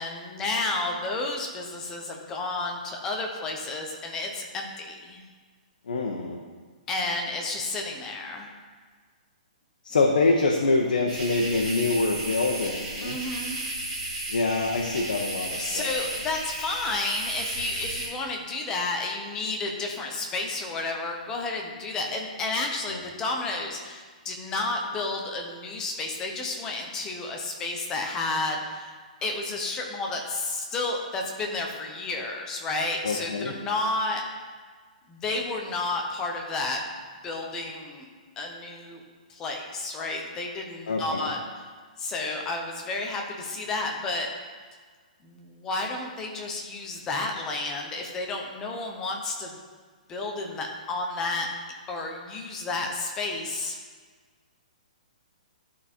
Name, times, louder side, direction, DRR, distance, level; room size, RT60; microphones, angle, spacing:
voice 1, 0.0-5.2 6.9-8.5 13.0-13.9 15.5-34.2 35.1-36.8 37.2-38.1 38.4-39.0 39.3-41.4 42.0-44.3 45.2-49.6 50.1-51.5 51.9-53.8, left 2 dB, 10° left, 1 dB, 0.7 m, -31 dB
voice 2, 5.9-6.4 9.8-13.2 14.3-15.9 33.0-33.5 40.9-41.3, left 3 dB, 85° left, 0 dB, 1.1 m, -25 dB
sound 1, 11.1-18.1, right 1 dB, 15° right, 2.4 m, -34 dB
12.0 x 4.3 x 4.4 m, 1.5 s
hypercardioid pair, 175°, 5 cm